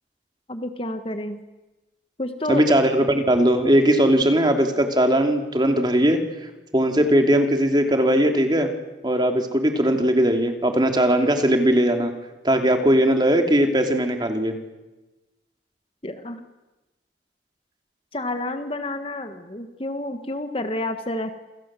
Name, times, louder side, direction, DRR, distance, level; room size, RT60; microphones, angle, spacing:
voice 1, 0.5-1.4 2.2-2.7 16.0-16.4 18.1-21.3, left 1 dB, 30° left, 8 dB, 1.6 m, -29 dB
voice 2, 2.5-6.2 6.7-8.7 9.0-12.1 12.4-14.5, equal, 25° right, 5 dB, 3.1 m, -19 dB
28.5 x 26.5 x 7.7 m, 1.1 s
head